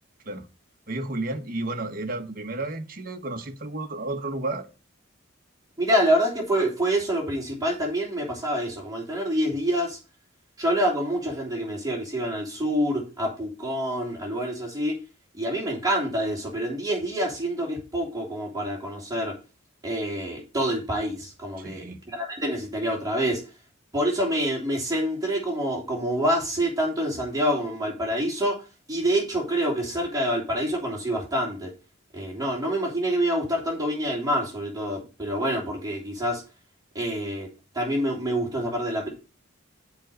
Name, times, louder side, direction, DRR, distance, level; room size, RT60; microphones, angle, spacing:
voice 1, 0.9-4.7 21.6-22.0, right 2 dB, 40° right, 1.1 m, -32 dB
voice 2, 5.8-10.0 10.6-14.9 15.3-19.3 19.8-23.4 23.9-28.6 28.9-31.7 32.1-36.4 36.9-37.5 37.7-39.1, equal, 15° right, 3.2 m, -26 dB
7.3 x 5.2 x 6.6 m
head